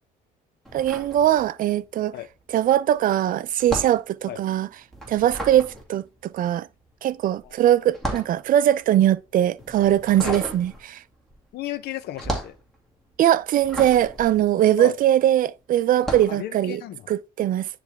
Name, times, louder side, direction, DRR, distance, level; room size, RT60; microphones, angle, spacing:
sound 1, 0.6-1.9 2.1-15.3 15.9-16.4, right 1 dB, ahead, 2.2 m, -35 dB
voice 1, 0.7-2.1 2.5-4.7 5.1-6.7 7.0-11.0 13.2-16.8 17.1-17.7, right 12 dB, 55° right, 0.5 m, -21 dB
voice 2, 11.5-12.6 14.8-15.0 16.3-17.1, left 13 dB, 70° left, 0.7 m, -33 dB
9.9 x 3.4 x 3.4 m
cardioid pair, 110°, 17 cm